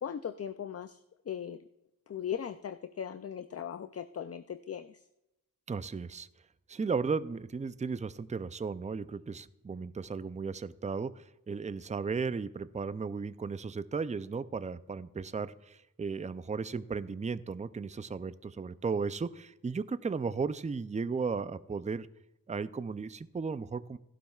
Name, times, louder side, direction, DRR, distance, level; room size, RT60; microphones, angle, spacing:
voice 1, 0.0-1.6 2.1-5.0, left 8 dB, 45° left, 12 dB, 0.4 m, -38 dB
voice 2, 5.7-6.3 6.7-22.1 22.5-24.0, right 5 dB, 20° right, 14 dB, 0.4 m, -35 dB
15.5 x 11.5 x 2.3 m, 0.93 s
wide cardioid pair, 55°, 35 cm